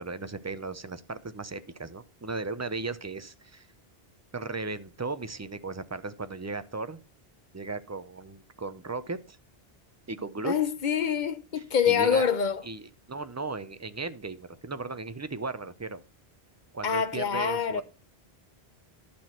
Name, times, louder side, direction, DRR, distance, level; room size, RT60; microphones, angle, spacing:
voice 1, 0.0-3.7 4.3-7.0 7.5-9.4 10.1-10.5 11.6-12.2 12.6-16.0 16.7-17.8, right 3 dB, 20° right, 0.5 m, -36 dB
voice 2, 10.4-12.6 16.8-17.8, left 7 dB, 50° left, 0.9 m, -26 dB
11.5 x 6.0 x 4.4 m
omnidirectional pair, 1.0 m